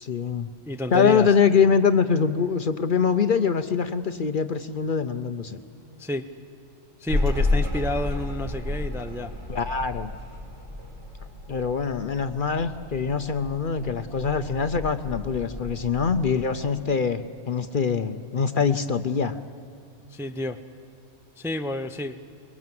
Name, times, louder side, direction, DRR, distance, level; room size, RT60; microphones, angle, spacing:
voice 1, 0.0-0.5 0.9-5.6 9.5-10.1 11.5-19.4, left 6 dB, 50° left, 10 dB, 0.8 m, -24 dB
voice 2, 0.7-1.3 6.0-6.3 7.0-9.3 20.1-20.6 21.4-22.3, left 1 dB, 5° right, 8 dB, 0.6 m, -30 dB
sound 1, 7.1-16.4, left 2 dB, 70° right, 5.3 m, -31 dB
23.0 x 22.0 x 7.7 m, 2.5 s
omnidirectional pair, 1.3 m